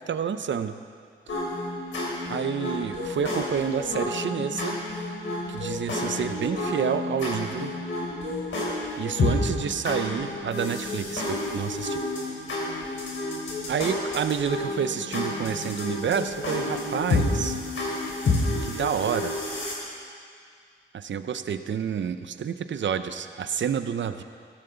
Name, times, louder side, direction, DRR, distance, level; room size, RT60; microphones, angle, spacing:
voice 1, 0.1-0.8 2.3-4.8 5.5-7.7 9.0-12.0 13.7-17.6 18.6-19.4 20.9-24.2, right 7 dB, 65° right, 10 dB, 0.7 m, -29 dB
sound 1, 1.3-19.7, left 2 dB, 75° left, 4.2 m, -30 dB
16.0 x 15.0 x 4.0 m, 2.2 s
cardioid pair, 65°, 20 cm